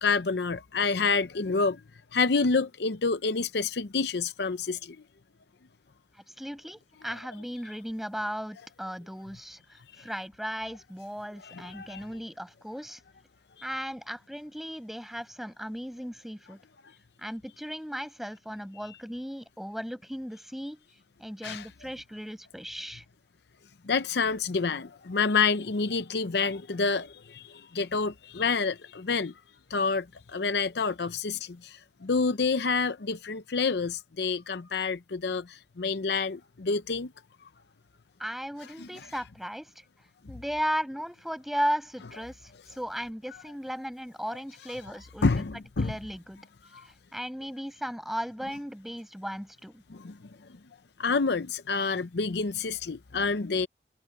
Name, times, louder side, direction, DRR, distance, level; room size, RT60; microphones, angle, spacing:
voice 1, 0.0-1.8 2.1-5.0 11.4-12.1 21.4-21.6 23.9-29.3 29.7-37.1 38.8-38.9 45.2-45.9 49.9-50.2 51.0-53.7, left 4 dB, 65° left, 0.7 m, -28 dB
voice 2, 6.4-13.0 13.6-16.6 17.2-20.8 21.2-23.0 38.2-39.7 40.3-45.3 45.8-46.4 46.9-49.8, equal, ahead, 7.1 m, -36 dB
head